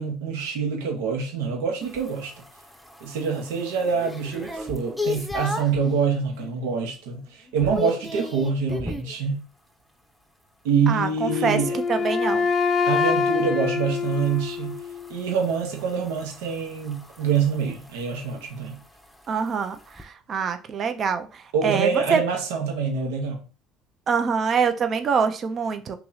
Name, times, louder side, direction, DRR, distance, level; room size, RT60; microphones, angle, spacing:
voice 1, 0.0-2.3 3.0-9.4 10.6-11.8 12.9-14.8 15.1-18.8 21.5-23.4, right 5 dB, 85° right, 1.0 m, -26 dB
sound 1, 1.8-5.9 6.4-6.8 7.1-9.2 11.6-20.0, left 2 dB, ahead, 0.7 m, -37 dB
voice 2, 10.9-11.6 11.9-12.5 19.3-22.2 24.1-26.0, right 6 dB, 45° right, 0.6 m, -25 dB
Wind instrument woodwind instrument, 11.2-15.2, left 5 dB, 40° left, 0.4 m, -25 dB
3.0 x 2.9 x 3.9 m
supercardioid pair, 90°, 0 cm